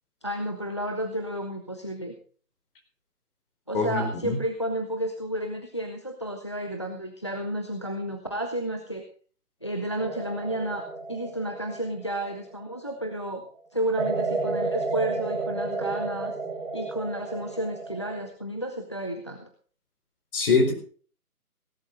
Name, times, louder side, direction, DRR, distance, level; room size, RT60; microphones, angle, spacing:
voice 1, 0.2-2.1 3.7-9.0 9.6-13.4 13.7-16.3 16.7-19.5, right 1 dB, 20° left, 6 dB, 0.6 m, -32 dB
voice 2, 3.7-4.4 20.3-20.7, left 4 dB, 35° left, 5 dB, 4.2 m, -23 dB
sound 1, 10.0-13.0 14.0-18.3, right 3 dB, 45° right, 3.7 m, -32 dB
17.0 x 11.5 x 3.9 m, 0.43 s
figure-of-eight pair, 150°, 46 cm